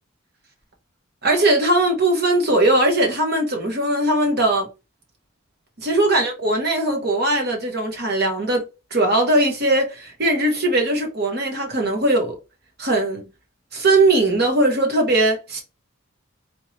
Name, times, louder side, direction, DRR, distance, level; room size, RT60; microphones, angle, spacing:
voice 1, 1.2-4.7 5.8-12.4 12.8-13.2 13.7-15.6, right 2 dB, 45° right, 1.2 m, -20 dB
3.7 x 3.1 x 2.8 m
head